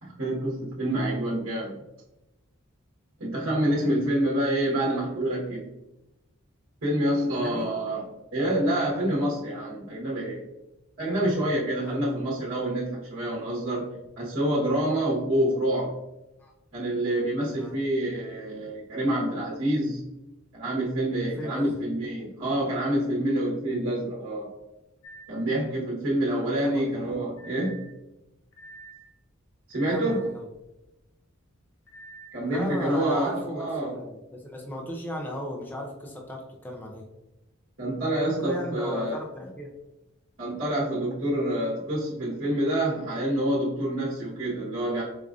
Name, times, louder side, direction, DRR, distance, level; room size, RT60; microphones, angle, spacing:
voice 1, 0.0-1.8 3.2-5.7 6.8-10.4 11.0-13.9 14.2-16.0 16.7-20.1 20.5-24.5 25.3-27.9 29.7-30.3 32.3-34.0 37.8-39.2 40.4-45.0, right 1 dB, 70° right, -7 dB, 1.0 m, -27 dB
voice 2, 7.2-7.7 11.2-11.3 11.8-12.0 16.4-16.5 17.5-17.7 21.3-21.8 26.6-26.9 29.9-30.5 32.4-37.1 38.3-39.7, equal, 10° left, -1 dB, 0.4 m, -36 dB
sound 1, 25.0-25.4 27.4-27.9 28.5-29.1 29.7-30.3 31.9-32.3, right 3 dB, 70° left, 0.7 m, -46 dB
4.6 x 2.4 x 2.4 m, 0.97 s
head